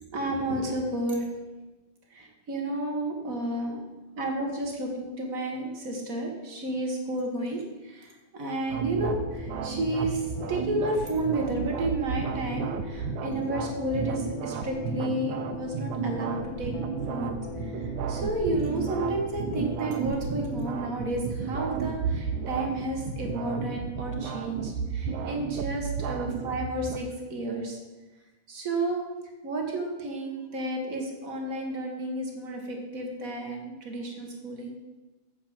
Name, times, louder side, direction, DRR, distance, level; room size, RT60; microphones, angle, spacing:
voice 1, 0.1-1.3 2.1-3.8 4.2-16.7 17.1-27.8 28.5-29.0 29.4-34.7, right 1 dB, 50° right, 1 dB, 0.9 m, -31 dB
sound 1, 8.7-27.0, right 6 dB, 75° right, 2.0 m, -33 dB
sound 2, 8.9-25.7, left 4 dB, 80° left, 0.8 m, -43 dB
8.6 x 7.3 x 7.6 m, 1.2 s
omnidirectional pair, 3.8 m